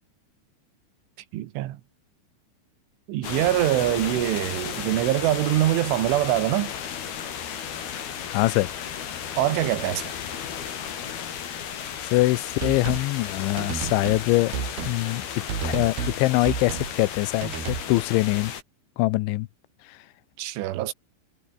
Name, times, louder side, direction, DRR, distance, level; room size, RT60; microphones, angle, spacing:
voice 1, 1.3-1.8 3.1-6.7 9.4-10.2 20.4-20.9, right 14 dB, 85° right, 3.9 m, -24 dB
sound 1, 3.2-18.6, left 8 dB, 60° left, 4.7 m, -34 dB
voice 2, 8.3-8.7 12.1-14.5 14.9-15.2 15.6-18.5 19.0-19.5, left 20 dB, 90° left, 3.1 m, -23 dB
sound 2, 12.6-13.1 13.6-14.3 14.5-15.0 15.5-16.2 16.5-16.9 17.4-17.9, right 7 dB, 60° right, 5.7 m, -31 dB
omnidirectional pair, 5.4 m